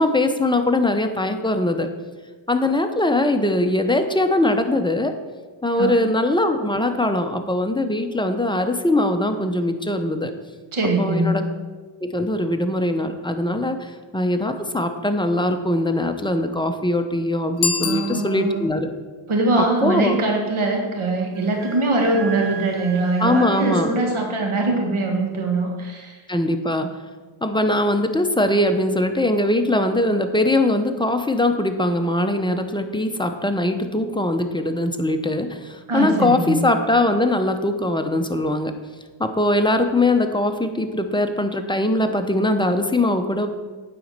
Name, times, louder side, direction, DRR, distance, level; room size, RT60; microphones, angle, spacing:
voice 1, 0.0-1.9 2.5-5.1 5.6-10.3 11.0-11.4 12.0-18.9 19.6-20.2 23.2-23.9 26.3-26.9 27.4-38.7 39.2-43.5, left 1 dB, 10° left, 6 dB, 0.8 m, -21 dB
voice 2, 10.7-11.5 17.8-18.6 19.3-26.2 35.9-36.6, right 2 dB, 80° right, 1 dB, 1.8 m, -22 dB
Bicycle bell, 17.5-18.8, left 4 dB, 50° left, 0.7 m, -27 dB
Wind instrument woodwind instrument, 21.3-23.9, right 7 dB, 5° right, 2.3 m, -37 dB
9.2 x 4.2 x 6.6 m, 1.4 s
cardioid pair, 55°, 49 cm